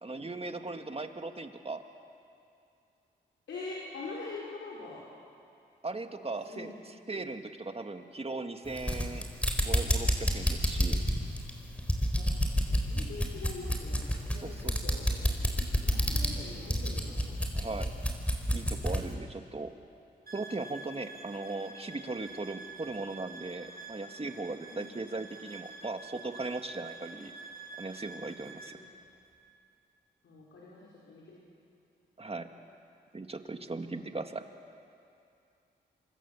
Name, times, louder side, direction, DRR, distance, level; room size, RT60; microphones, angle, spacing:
voice 1, 0.0-1.8 5.8-9.3 9.6-11.0 14.3-14.8 17.5-17.9 18.5-19.7 20.3-27.3 27.8-28.8 32.2-32.5 33.1-34.4, right 3 dB, 30° right, 6 dB, 2.0 m, -38 dB
voice 2, 3.5-5.0 6.2-6.7 12.2-12.3 12.7-15.1 15.8-17.4 24.7-24.9 28.7-28.9 30.2-31.4, left 3 dB, 85° left, -6 dB, 5.0 m, -44 dB
sound 1, 8.7-19.1, equal, 5° left, 4.1 m, -29 dB
sound 2, 20.3-28.8, right 3 dB, 55° right, 6.9 m, -48 dB
27.5 x 24.5 x 7.2 m, 2.5 s
cardioid pair, 55°, 19 cm